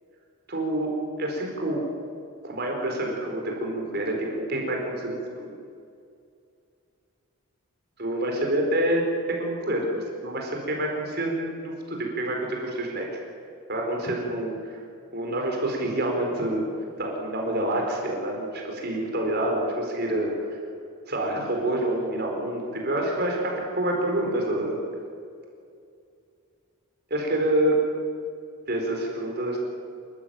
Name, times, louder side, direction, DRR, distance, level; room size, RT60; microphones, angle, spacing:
voice 1, 0.5-1.9 2.4-5.5 8.0-13.1 13.7-14.8 15.1-16.6 17.0-20.6 21.1-24.7 27.1-27.8 28.7-29.6, right 1 dB, 45° right, 1 dB, 4.6 m, -27 dB
27.0 x 14.5 x 9.1 m, 2.4 s
head